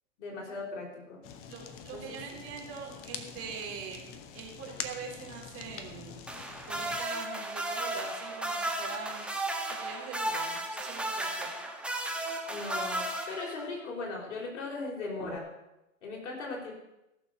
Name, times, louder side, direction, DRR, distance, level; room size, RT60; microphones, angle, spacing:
voice 1, 0.2-1.2 1.9-2.4 12.5-15.5 16.0-16.7, left 3 dB, 65° left, -1 dB, 5.2 m, -38 dB
Fire, 1.2-7.0, left 7 dB, 35° left, 1.3 m, -45 dB
voice 2, 1.5-4.0 4.3-6.1 6.7-9.3 9.6-11.5, right 6 dB, 35° right, 0 dB, 3.6 m, -43 dB
sound 1, 6.3-13.9 15.2-15.4, right 1 dB, 5° right, 1.3 m, -34 dB
15.5 x 6.8 x 6.8 m, 0.92 s
hypercardioid pair, 105°, 39 cm